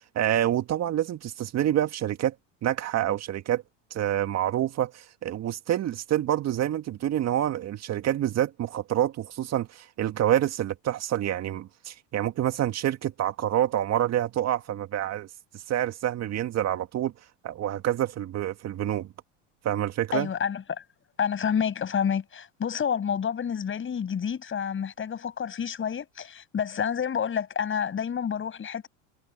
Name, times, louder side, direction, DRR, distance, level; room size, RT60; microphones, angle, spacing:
voice 1, 0.2-2.3 2.6-3.6 3.9-15.3 15.5-17.1 17.4-19.1 19.6-20.3, right 12 dB, 45° right, 2.0 m, -27 dB
voice 2, 20.1-20.8 21.2-28.9, left 7 dB, 30° left, 7.8 m, -29 dB
hypercardioid pair, 90°, 38 cm